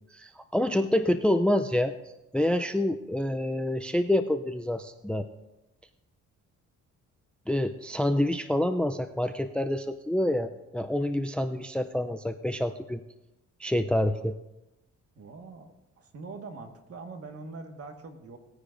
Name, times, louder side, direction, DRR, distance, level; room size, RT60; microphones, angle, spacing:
voice 1, 0.1-1.9 2.3-5.3 7.5-13.0 13.6-14.3, left 1 dB, 5° left, 9 dB, 0.4 m, -27 dB
voice 2, 15.1-15.7 16.0-18.4, right 3 dB, 50° right, 5 dB, 1.6 m, -43 dB
19.0 x 9.7 x 2.6 m, 0.95 s
cardioid pair, 90°, 30 cm